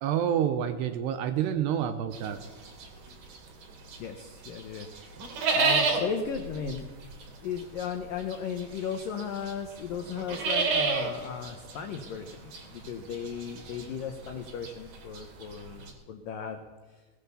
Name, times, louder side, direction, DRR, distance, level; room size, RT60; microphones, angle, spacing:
voice 1, 0.0-2.4, right 9 dB, 75° right, 10 dB, 2.6 m, -28 dB
sound 1, 2.1-4.1 4.4-15.9, right 4 dB, 50° right, 4.1 m, -31 dB
voice 2, 4.0-5.1 5.5-6.9 7.4-16.6, left 6 dB, 75° left, 5 dB, 2.0 m, -36 dB
19.5 x 19.0 x 7.1 m, 1.3 s
omnidirectional pair, 5.8 m